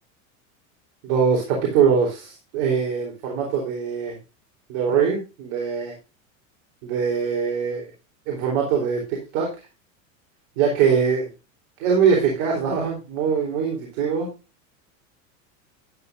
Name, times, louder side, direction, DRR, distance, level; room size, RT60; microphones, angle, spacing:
voice 1, 1.0-4.2 4.7-5.9 6.8-7.9 8.3-9.0 9.3-9.5 10.6-11.3 11.8-14.3, right 6 dB, 65° right, -1 dB, 3.8 m, -22 dB
12.0 x 10.0 x 2.6 m, 0.29 s
supercardioid pair, 105°, 41 cm